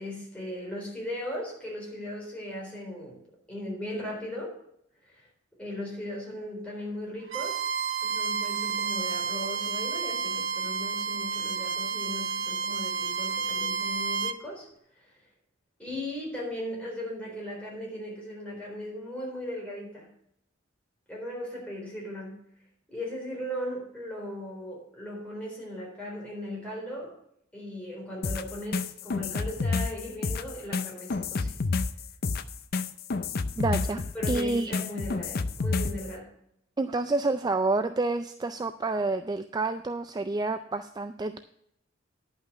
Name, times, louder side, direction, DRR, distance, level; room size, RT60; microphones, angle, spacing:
voice 1, 0.0-3.2 3.5-4.6 5.2-5.3 5.6-7.6 8.0-14.7 15.8-20.1 21.1-22.4 22.9-27.2 27.5-31.5 33.9-36.3, left 1 dB, 5° left, -3 dB, 4.0 m, -37 dB
Bowed string instrument, 7.3-14.4, right 5 dB, 70° right, 0.6 m, -30 dB
sound 1, 28.2-36.1, left 4 dB, 50° left, 0.5 m, -29 dB
voice 2, 33.6-34.7 36.8-41.4, right 3 dB, 20° right, 9 dB, 0.3 m, -29 dB
11.0 x 5.7 x 6.7 m, 0.73 s
head